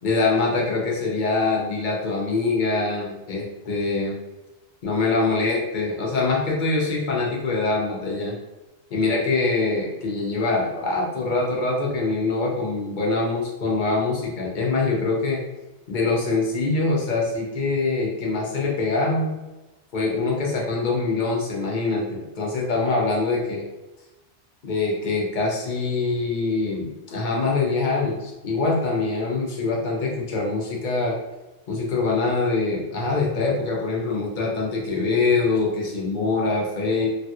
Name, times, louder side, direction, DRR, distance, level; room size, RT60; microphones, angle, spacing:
voice 1, 0.0-4.2 4.8-8.4 8.9-15.4 15.9-19.4 19.9-23.6 24.6-31.2 31.7-37.1, left 3 dB, 50° left, -2 dB, 0.7 m, -24 dB
3.2 x 2.3 x 2.7 m, 1.0 s
omnidirectional pair, 1.2 m